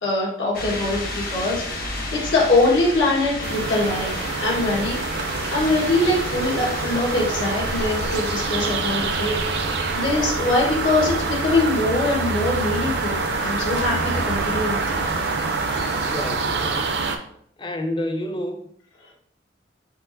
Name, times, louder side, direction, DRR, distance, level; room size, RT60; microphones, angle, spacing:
voice 1, 0.0-5.0 5.5-14.0 14.3-15.1, left 2 dB, 85° left, 1.4 m, -23 dB
sound 1, 0.5-16.3, left 1 dB, 50° left, 0.9 m, -33 dB
sound 2, 3.4-17.2, right 4 dB, 60° right, 0.5 m, -26 dB
voice 2, 16.0-16.9 17.6-18.6, left 1 dB, 25° left, 0.5 m, -29 dB
4.5 x 4.1 x 2.6 m
head